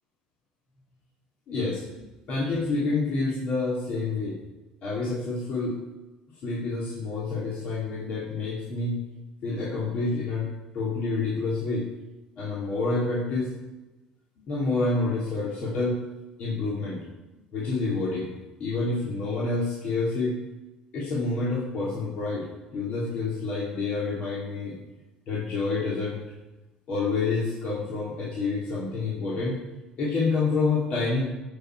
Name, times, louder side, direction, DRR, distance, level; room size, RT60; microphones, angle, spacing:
voice 1, 1.5-1.8 2.3-4.4 4.8-5.8 6.4-9.0 9.4-10.5 10.7-11.9 12.4-13.5 14.5-16.0 16.4-17.0 17.5-18.3 18.6-20.4 20.9-22.5 22.7-24.8 25.3-26.2 26.9-29.6 30.0-31.3, left 3 dB, 60° left, -5 dB, 2.9 m, -28 dB
16.0 x 7.2 x 4.6 m, 1.1 s
cardioid pair, 110°, 3 cm